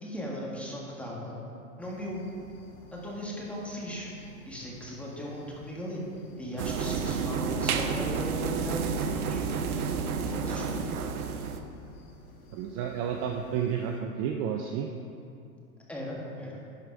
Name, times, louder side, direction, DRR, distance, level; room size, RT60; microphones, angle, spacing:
voice 1, 0.0-1.4 1.8-2.2 2.9-4.1 4.5-6.0 6.4-9.4 10.2-10.9 15.9-16.6, equal, 5° left, -4 dB, 1.8 m, -37 dB
sound 1, 1.8-14.0, left 2 dB, 80° left, 1.6 m, -53 dB
sound 2, 6.6-11.6, right 6 dB, 80° right, 0.8 m, -30 dB
voice 2, 12.5-15.0, right 8 dB, 35° right, 3 dB, 0.6 m, -31 dB
11.5 x 5.0 x 4.6 m, 2.5 s
hypercardioid pair, 110°, 44 cm